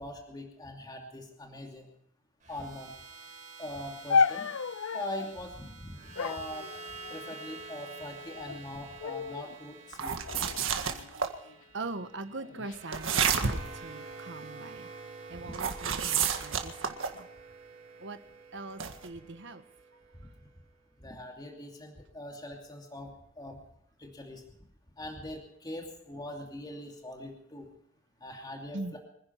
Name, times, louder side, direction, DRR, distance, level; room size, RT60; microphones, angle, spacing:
voice 1, 0.0-1.9 2.5-2.9 3.6-4.4 4.9-6.7 7.1-10.2 15.4-15.5 21.0-23.6 24.0-24.4 25.0-27.7 28.2-29.0, left 1 dB, 20° left, 1 dB, 2.7 m, -42 dB
sound 1, 2.4-20.6, right 4 dB, 45° right, 5.0 m, -48 dB
sound 2, 4.1-5.4 6.2-7.4 8.1-8.6 9.0-9.6 10.3-11.5 12.3-12.8, left 5 dB, 90° left, 0.5 m, -32 dB
sound 3, 9.9-11.3 12.9-13.8 15.5-17.2 18.8-19.1, right 6 dB, 85° right, 1.8 m, -30 dB
voice 2, 11.5-14.9 15.3-17.3 18.0-18.2 18.5-19.6 28.7-29.0, right 3 dB, 65° right, 9 dB, 1.3 m, -41 dB
25.5 x 10.5 x 4.6 m, 0.75 s
head